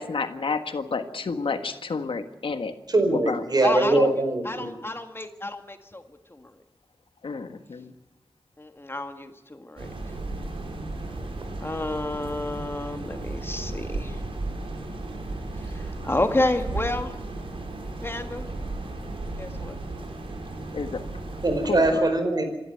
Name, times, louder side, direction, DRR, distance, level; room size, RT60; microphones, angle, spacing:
voice 1, 0.0-2.7 3.3-3.4 3.9-4.1 7.2-7.9 20.7-21.0 21.7-22.0, left 4 dB, 75° left, 8 dB, 1.6 m, -30 dB
voice 2, 2.9-4.7 21.4-22.5, right 2 dB, 50° right, 7 dB, 4.7 m, -22 dB
voice 3, 3.6-4.1 4.4-6.0 6.3-6.5 8.6-9.9 11.6-14.2 15.6-17.1 18.0-18.5 19.4-19.8, left 2 dB, 25° left, 7 dB, 1.7 m, -30 dB
sound 1, 9.8-21.9, right 2 dB, 85° right, 4.6 m, -35 dB
27.0 x 12.0 x 9.3 m, 1.0 s
wide cardioid pair, 70°, 9 cm